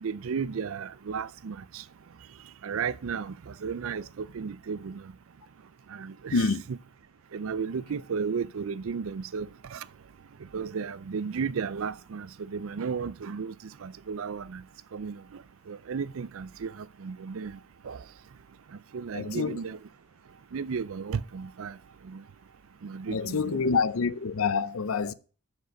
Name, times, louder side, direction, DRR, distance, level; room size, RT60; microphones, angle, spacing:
voice 1, 0.0-1.8 2.6-5.0 5.9-6.8 7.3-9.8 10.5-13.5 13.8-14.6 14.9-15.2 15.7-17.6 17.8-18.0 18.9-19.8 20.5-21.7 22.0-22.2 22.8-23.6, right 6 dB, 70° right, 0.4 m, -34 dB
voice 2, 6.3-6.6 19.1-19.6 23.1-25.1, left 4 dB, 70° left, 0.6 m, -27 dB
13.0 x 5.2 x 5.2 m
head